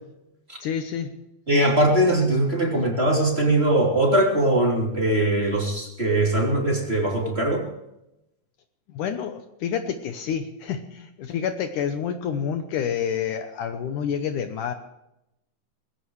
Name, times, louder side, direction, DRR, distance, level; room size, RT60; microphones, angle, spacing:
voice 1, 0.6-1.1 8.9-14.7, left 8 dB, 70° left, 7 dB, 2.2 m, -28 dB
voice 2, 1.5-7.6, right 1 dB, 20° right, -1 dB, 3.1 m, -21 dB
20.5 x 17.0 x 3.2 m, 0.87 s
omnidirectional pair, 4.1 m